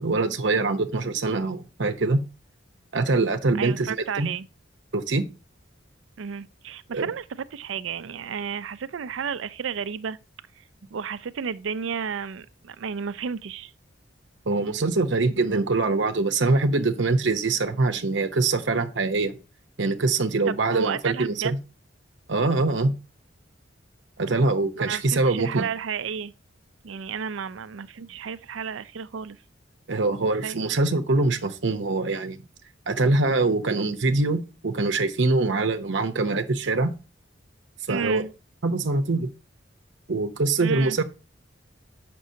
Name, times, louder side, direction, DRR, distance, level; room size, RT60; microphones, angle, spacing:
voice 1, 0.0-2.2 2.9-4.3 4.9-5.2 6.9-7.1 14.5-19.4 19.8-21.6 22.3-22.9 24.2-25.7 29.9-32.4 32.9-36.9 37.9-38.2 38.6-39.3 40.1-41.0, right 3 dB, 70° right, 0.8 m, -24 dB
voice 2, 3.6-4.5 6.2-10.2 10.6-10.7 10.9-13.7 20.5-21.5 24.8-26.3 26.8-29.4 29.9-30.6 37.9-38.3 40.6-41.0, right 6 dB, 90° right, 0.5 m, -32 dB
7.6 x 6.0 x 2.7 m
head